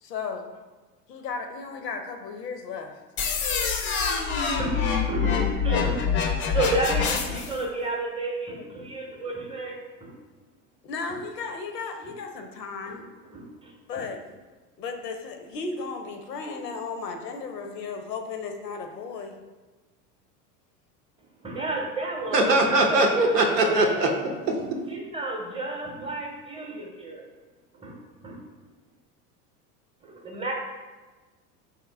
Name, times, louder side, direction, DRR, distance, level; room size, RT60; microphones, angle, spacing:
voice 1, 0.0-0.6 1.1-3.0 10.8-13.1 13.9-14.2 14.8-19.3, left 4 dB, 85° left, 5 dB, 0.6 m, -35 dB
sound 1, 3.2-7.6, left 6 dB, 25° left, 0.4 m, -26 dB
voice 2, 4.6-10.1 11.1-11.2 12.0-12.1 12.9-14.1 21.4-22.5 22.9-23.0 23.6-23.8 24.6-27.2 27.7-28.0 28.2-28.4 30.0-30.5, right 2 dB, 10° right, 0 dB, 0.7 m, -32 dB
voice 3, 22.3-24.8, right 2 dB, 90° right, 2 dB, 0.7 m, -22 dB
3.6 x 2.9 x 3.3 m, 1.3 s
hypercardioid pair, 80°, 47 cm